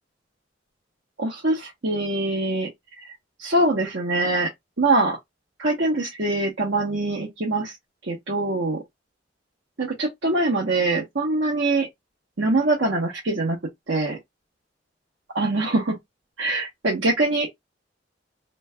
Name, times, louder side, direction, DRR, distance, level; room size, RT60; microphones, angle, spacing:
voice 1, 1.2-2.7 3.0-3.1 3.4-4.5 4.8-5.2 5.6-7.8 8.0-8.8 9.8-11.9 12.4-13.6 13.9-14.2 15.3-16.0 16.4-17.5, right 2 dB, 85° right, 1.1 m, -23 dB
3.2 x 3.1 x 2.3 m
head